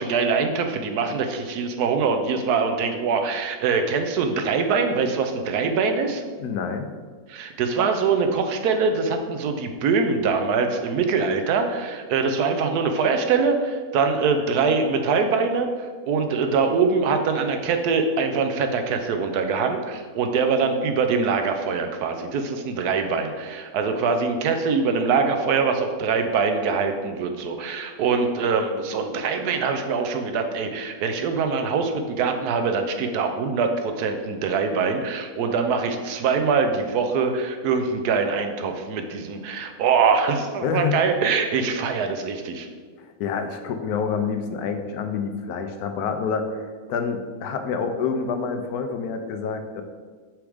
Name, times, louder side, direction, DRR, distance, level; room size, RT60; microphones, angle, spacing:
voice 1, 0.0-6.2 7.3-42.7, right 5 dB, 80° right, 6 dB, 1.2 m, -23 dB
voice 2, 6.4-6.9 40.6-41.0 43.0-46.5 46.9-49.8, left 6 dB, 80° left, 6 dB, 1.1 m, -27 dB
6.1 x 3.5 x 4.9 m, 1.5 s
omnidirectional pair, 1.6 m